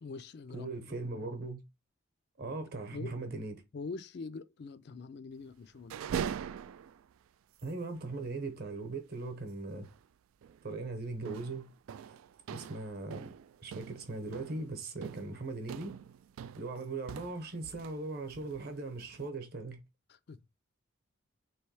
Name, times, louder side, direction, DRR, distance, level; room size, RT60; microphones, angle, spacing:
voice 1, 0.0-0.7 2.9-3.1 3.7-5.9 20.3-20.4, left 4 dB, 55° left, 0.4 m, -43 dB
voice 2, 0.5-1.6 2.4-3.6 7.6-9.9 10.6-11.7 12.1-12.2 12.5-13.3 13.6-16.0 16.6-19.8, right 3 dB, 50° right, 0.9 m, -39 dB
sound 1, 5.7-7.2 7.6-7.7 7.9-8.1 9.8-10.1 10.4-10.7 11.2-18.0 18.3-19.3, right 8 dB, 85° right, 0.3 m, -43 dB
3.5 x 3.1 x 4.6 m
head